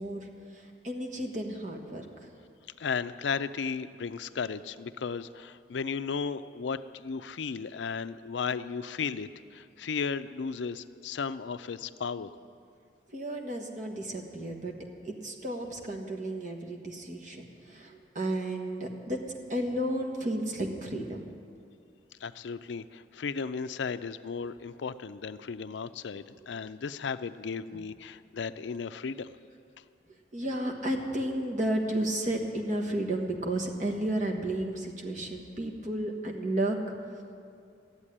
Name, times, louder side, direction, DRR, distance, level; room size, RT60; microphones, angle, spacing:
voice 1, 0.0-2.3 13.1-14.7 15.0-19.2 19.5-21.2 27.7-27.8 30.3-36.8, right 1 dB, 45° right, 2 dB, 1.4 m, -32 dB
voice 2, 2.8-12.3 22.2-29.3, left 5 dB, 80° left, 13 dB, 0.4 m, -35 dB
13.5 x 8.2 x 9.9 m, 2.4 s
head